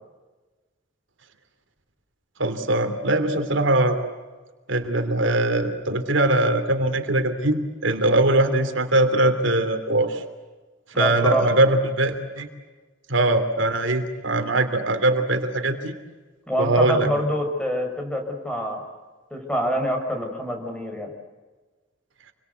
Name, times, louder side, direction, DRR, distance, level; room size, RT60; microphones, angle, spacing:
voice 1, 2.4-4.0 4.7-10.2 11.0-12.5 13.1-15.9 16.6-17.1, right 2 dB, 80° right, 6 dB, 3.1 m, -21 dB
voice 2, 10.9-11.5 16.5-18.8 19.3-21.1, equal, 5° left, 3 dB, 5.4 m, -26 dB
28.5 x 23.5 x 8.2 m, 1.3 s
head